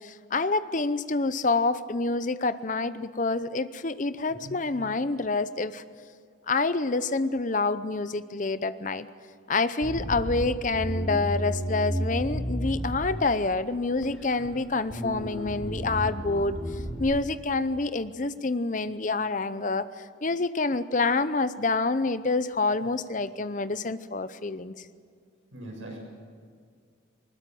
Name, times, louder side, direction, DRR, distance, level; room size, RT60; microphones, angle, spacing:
voice 1, 0.0-5.8 6.5-9.1 9.5-16.6 17.0-24.8, left 3 dB, 40° left, 13 dB, 0.7 m, -27 dB
Bass guitar, 9.8-13.4 14.0-14.6 14.9-17.0, equal, 5° left, 5.7 m, -32 dB
voice 2, 25.5-26.0, right 1 dB, 75° right, -1 dB, 7.8 m, -40 dB
21.0 x 19.5 x 7.8 m, 2.1 s
head